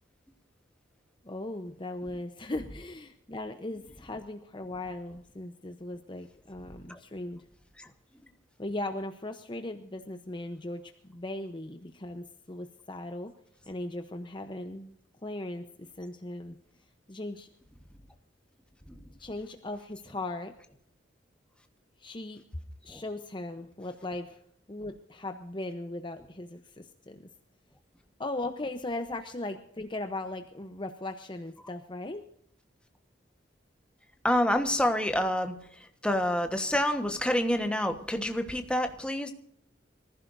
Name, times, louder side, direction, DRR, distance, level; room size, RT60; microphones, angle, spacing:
voice 1, 1.2-7.4 8.6-13.3 13.7-14.9 15.2-16.6 17.1-17.5 19.2-20.5 22.0-22.4 22.8-24.4 24.7-27.3 28.2-32.2, left 2 dB, 25° left, 7 dB, 0.8 m, -38 dB
voice 2, 34.2-35.5 36.0-39.3, left 1 dB, 5° left, 6 dB, 1.3 m, -27 dB
25.5 x 15.0 x 2.7 m, 0.70 s
head